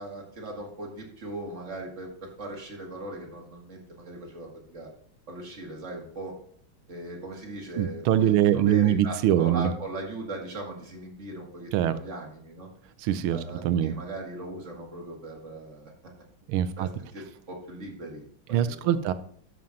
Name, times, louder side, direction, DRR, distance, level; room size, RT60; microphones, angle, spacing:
voice 1, 0.0-4.9 5.3-6.4 6.9-12.7 13.3-15.9 16.8-19.0, right 2 dB, 35° right, -1 dB, 2.3 m, -39 dB
voice 2, 7.8-9.7 11.7-11.9 13.0-13.9 16.5-16.9 18.5-19.1, right 11 dB, 85° right, 13 dB, 1.5 m, -23 dB
12.5 x 6.4 x 2.8 m, 0.63 s
omnidirectional pair, 2.3 m